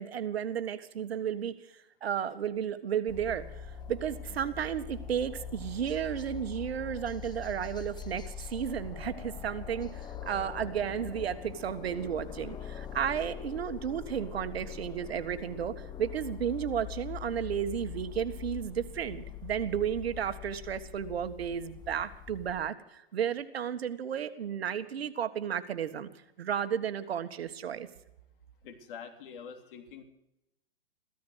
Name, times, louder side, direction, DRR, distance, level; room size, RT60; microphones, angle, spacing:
voice 1, 0.0-26.1 26.4-27.9, right 8 dB, 85° right, 9 dB, 1.7 m, -33 dB
sound 1, 3.1-22.7, left 8 dB, 15° left, 0.9 m, -43 dB
voice 2, 28.6-30.0, left 7 dB, 60° left, 6 dB, 3.3 m, -45 dB
15.0 x 14.0 x 6.3 m, 0.83 s
hypercardioid pair, 135°, 30 cm